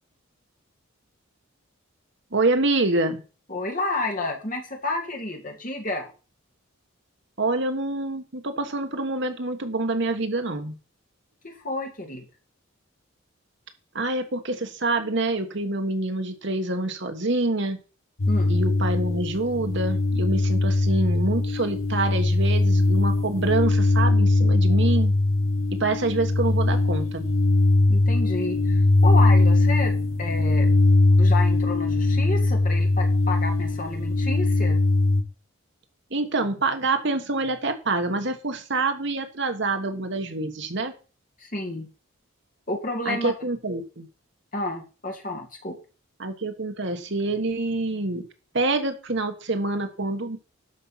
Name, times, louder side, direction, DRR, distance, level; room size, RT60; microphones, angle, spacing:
voice 1, 2.3-3.2 7.4-10.8 13.9-17.8 18.5-25.1 25.8-27.3 36.1-40.9 43.0-44.1 46.2-48.2 48.5-50.4, right 2 dB, 55° right, 6 dB, 1.4 m, -26 dB
voice 2, 3.5-6.1 11.4-12.2 18.3-18.5 27.9-30.7 31.2-34.8 41.4-41.9 42.7-43.3 44.5-45.8, left 2 dB, 40° left, 3 dB, 2.3 m, -30 dB
sound 1, 18.2-35.2, left 2 dB, 70° left, 1.5 m, -21 dB
12.0 x 5.4 x 5.8 m, 0.35 s
head